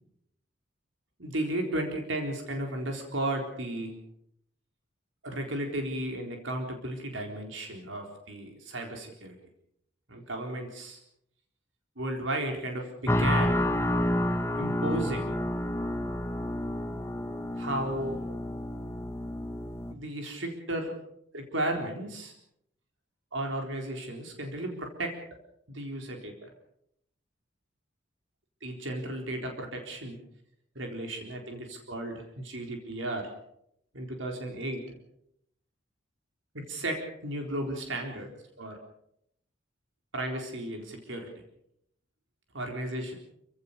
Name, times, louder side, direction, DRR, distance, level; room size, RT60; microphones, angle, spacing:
voice 1, 1.2-4.0 5.2-9.3 10.1-11.0 12.0-13.7 14.6-15.4 17.6-18.3 19.9-20.9 21.3-22.3 23.3-25.2 25.7-26.5 28.6-30.2 30.8-33.3 33.9-34.8 36.5-38.3 38.6-38.8 40.1-41.3 42.5-43.1, right 1 dB, 75° right, 2 dB, 4.1 m, -34 dB
sound 1, 13.1-19.9, left 1 dB, 15° left, 1.2 m, -29 dB
28.0 x 16.0 x 6.8 m, 0.76 s
head